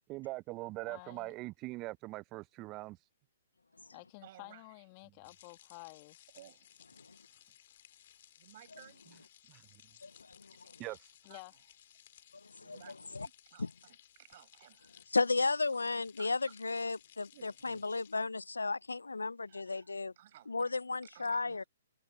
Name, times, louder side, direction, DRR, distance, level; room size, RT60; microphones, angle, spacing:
voice 1, 0.1-3.1 9.5-9.7 10.8-11.2, right 20 dB, 30° right, 0.5 m, -42 dB
voice 2, 0.9-1.3 3.9-6.3 11.2-11.5, left 28 dB, 35° left, 1.3 m, -52 dB
voice 3, 4.2-4.9 6.3-6.7 8.4-9.0 10.4-10.7 11.3-11.4 12.5-15.0 16.2-16.3 17.3-17.8 19.5-20.7 21.0-21.7, right 14 dB, 50° right, 5.2 m, -58 dB
sound 1, 5.2-18.1, left 12 dB, 55° left, 2.8 m, -61 dB
voice 4, 10.0-10.8 12.3-12.8 13.1-13.3 13.6-13.7 15.1-20.1 20.5-21.6, left 3 dB, 85° left, 0.6 m, -34 dB
figure-of-eight pair, 125°, 0 cm